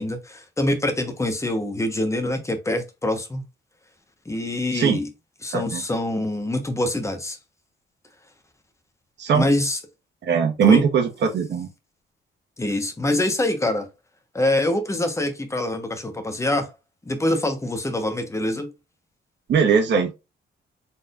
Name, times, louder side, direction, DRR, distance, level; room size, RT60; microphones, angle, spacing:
voice 1, 0.0-3.4 4.2-5.1 5.4-7.4 9.3-9.8 10.6-10.8 12.6-13.9 14.3-16.7 17.0-18.7, left 1 dB, 15° left, 1.1 m, -25 dB
voice 2, 10.2-11.7 19.5-20.1, right 6 dB, 65° right, 1.3 m, -20 dB
4.3 x 3.5 x 2.4 m
cardioid pair, 90°, 20 cm